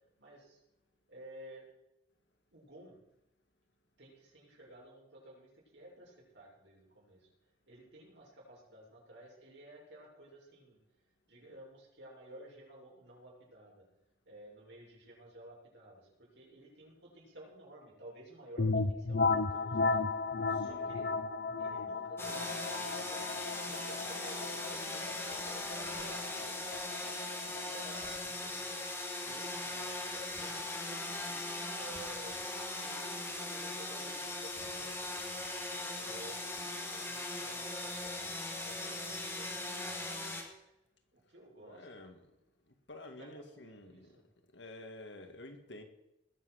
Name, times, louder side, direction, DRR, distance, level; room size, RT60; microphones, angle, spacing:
voice 1, 0.2-0.6 1.1-1.7 2.5-3.0 4.0-7.3 7.7-10.8 11.3-13.8 14.2-20.0 20.5-21.1 21.6-28.8 29.2-31.4 31.7-32.4 32.8-35.3 35.9-40.1 41.1-42.1 43.0-44.2, right 1 dB, 75° right, -3 dB, 6.7 m, -54 dB
sound 1, 18.6-28.1, left 3 dB, 60° left, 0.7 m, -35 dB
sound 2, 22.2-40.4, left 2 dB, 15° left, 2.2 m, -39 dB
voice 2, 41.6-42.3 42.9-44.1 44.5-45.8, left 2 dB, 75° left, 6 dB, 2.1 m, -50 dB
20.0 x 7.7 x 6.5 m, 0.87 s
head